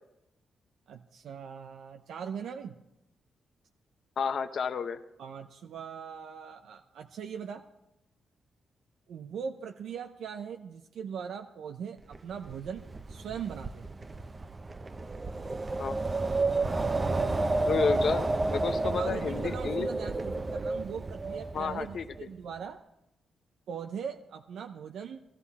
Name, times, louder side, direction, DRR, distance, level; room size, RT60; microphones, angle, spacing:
voice 1, 0.9-2.8 5.2-7.6 9.1-13.9 18.8-22.8 23.7-25.2, right 7 dB, 80° right, 4 dB, 0.7 m, -40 dB
voice 2, 4.2-5.0 15.8-15.9 17.7-19.9 21.5-22.0, left 6 dB, 60° left, 9 dB, 0.9 m, -31 dB
Wind, 12.1-22.2, right 2 dB, 25° right, 0.7 m, -31 dB
19.0 x 13.5 x 4.2 m, 0.88 s
cardioid pair, 105°, 0 cm